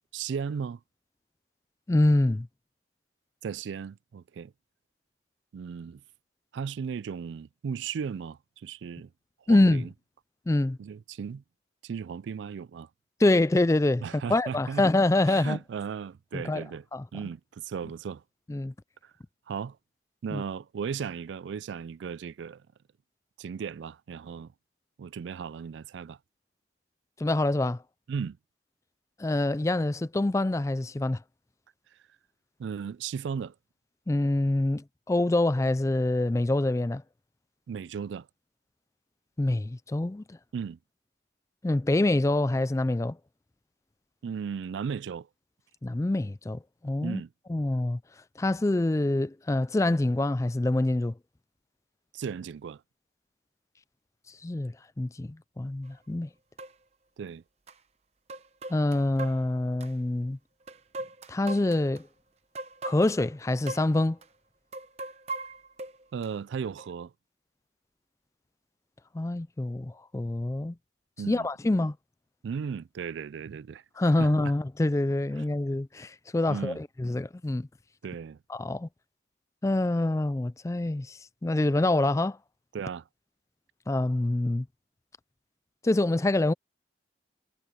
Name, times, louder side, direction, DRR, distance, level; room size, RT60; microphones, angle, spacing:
voice 1, 0.1-0.8 3.4-4.5 5.5-6.0 6.5-9.1 9.5-9.9 10.8-11.4 11.8-12.9 14.0-14.9 15.3-16.8 17.1-18.2 19.0-19.1 19.5-19.8 20.2-22.6 23.4-24.5 25.0-26.2 28.1-28.4 32.6-33.5 37.7-38.3 40.5-40.8 44.2-45.3 47.0-47.3 52.1-52.8 57.2-57.4 66.1-67.1 71.2-71.5 72.4-74.5 75.4-75.5 76.5-76.8 78.0-78.4 82.7-83.0, right 6 dB, 75° right, 0.3 m, -36 dB
voice 2, 1.9-2.5 9.5-9.9 10.5-10.8 13.2-15.6 16.3-16.6 16.9-17.0 18.5-18.7 20.3-20.4 27.2-27.8 29.2-31.2 34.1-37.0 39.4-40.4 41.6-43.2 45.8-47.2 47.5-48.0 48.4-51.1 54.3-56.3 58.7-60.4 61.3-62.1 62.8-64.2 69.1-70.8 71.3-72.0 74.0-77.7 78.5-78.9 79.6-82.4 83.9-84.7 85.8-86.5, left 2 dB, 15° left, 0.3 m, -26 dB
sound 1, 55.9-56.0 56.6-56.7 57.7-57.8 58.3-59.9 60.7-62.0 62.5-63.3 63.7-63.9 64.2-64.3 64.7-66.3 66.8-66.9, right 2 dB, 35° right, 0.8 m, -39 dB
head